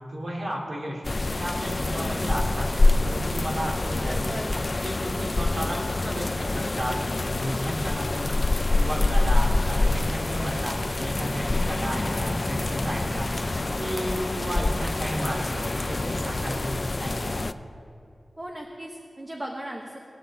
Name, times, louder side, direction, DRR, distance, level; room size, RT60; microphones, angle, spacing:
voice 1, 0.1-1.0 1.4-4.4 4.8-8.4 8.7-13.3 13.7-17.6, equal, 55° right, -3 dB, 2.6 m, -33 dB
sound 1, 1.0-17.5, left 2 dB, 40° left, 0.3 m, -26 dB
voice 2, 3.9-4.5 18.4-20.1, right 1 dB, 30° right, 0 dB, 1.1 m, -37 dB
sound 2, 7.0-16.7, right 1 dB, 85° right, 2.4 m, -47 dB
Boom, 11.1-14.2, left 1 dB, 10° left, 0.9 m, -35 dB
20.0 x 7.4 x 4.1 m, 2.5 s
wide cardioid pair, 85°, 0 cm